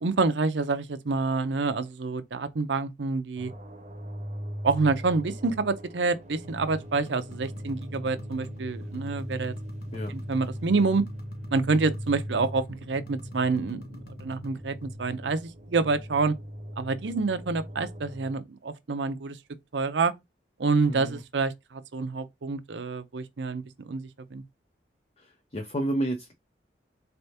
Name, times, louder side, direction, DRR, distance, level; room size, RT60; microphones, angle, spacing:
voice 1, 0.0-3.5 4.6-9.5 10.1-11.0 11.5-16.3 16.8-19.4 19.7-20.1 20.6-24.4, right 4 dB, 80° right, 0.6 m, -27 dB
sound 1, 3.4-18.3, equal, 40° right, 0.8 m, -40 dB
sound 2, 6.4-14.9, left 1 dB, 60° left, 0.8 m, -45 dB
voice 2, 20.9-21.2 25.2-26.3, right 1 dB, 35° left, 0.6 m, -31 dB
4.2 x 3.4 x 2.8 m
head